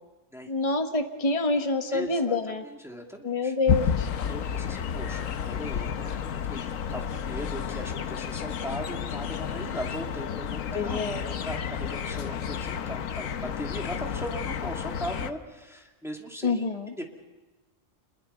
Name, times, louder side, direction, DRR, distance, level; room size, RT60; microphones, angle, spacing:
voice 1, 0.5-2.6 3.2-4.1 10.7-11.2 16.4-16.9, left 3 dB, 30° left, 6 dB, 1.3 m, -27 dB
voice 2, 1.9-2.4 2.6-3.5 4.2-17.0, equal, ahead, 1 dB, 2.4 m, -39 dB
sound 1, 3.7-15.3, left 7 dB, 90° left, 1.3 m, -31 dB
27.0 x 21.5 x 5.7 m, 1.2 s
omnidirectional pair, 1.3 m